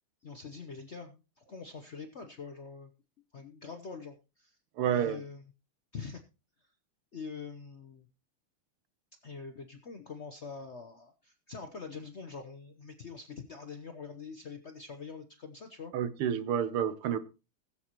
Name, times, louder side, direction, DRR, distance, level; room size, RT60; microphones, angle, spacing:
voice 1, 0.2-2.9 3.3-4.6 4.9-5.4 5.9-6.2 7.1-8.1 9.2-15.9, left 5 dB, 65° left, 0.6 m, -44 dB
voice 2, 4.8-5.2 15.9-17.2, right 9 dB, 80° right, 1.8 m, -29 dB
20.5 x 7.6 x 3.0 m
omnidirectional pair, 2.4 m